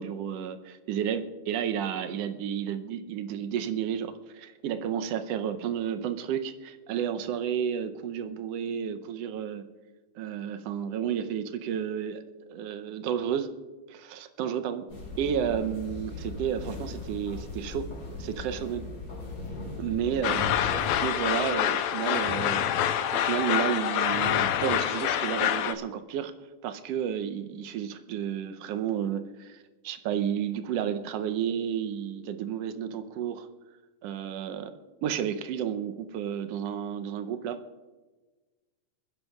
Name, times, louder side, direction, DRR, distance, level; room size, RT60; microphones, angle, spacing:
voice 1, 0.0-9.6 10.2-13.5 13.9-14.8 15.2-17.9 18.2-18.8 19.8-22.6 23.1-26.3 26.6-33.5 34.0-34.7 35.0-37.6, right 9 dB, 75° right, 8 dB, 1.5 m, -31 dB
sound 1, 14.9-21.0, left 3 dB, 35° left, 4.3 m, -39 dB
sound 2, 20.2-25.7, left 10 dB, 75° left, 1.7 m, -26 dB
28.0 x 10.5 x 2.4 m, 1.3 s
omnidirectional pair, 3.5 m